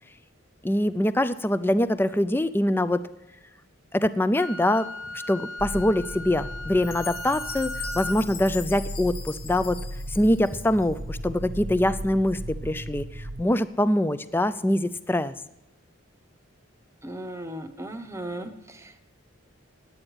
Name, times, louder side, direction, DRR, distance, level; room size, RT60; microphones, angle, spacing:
voice 1, 0.6-3.0 3.9-4.9 5.1-9.8 10.1-15.3, left 1 dB, 10° left, 14 dB, 0.3 m, -24 dB
Wind instrument woodwind instrument, 4.3-8.2, left 2 dB, 70° left, 1.3 m, -37 dB
sound 1, 5.6-13.4, equal, 65° right, 0.8 m, -36 dB
Chime, 6.8-11.0, left 8 dB, 45° left, 1.0 m, -41 dB
voice 2, 17.0-19.0, right 1 dB, 15° right, 8 dB, 0.8 m, -37 dB
10.5 x 8.8 x 7.9 m, 0.93 s
head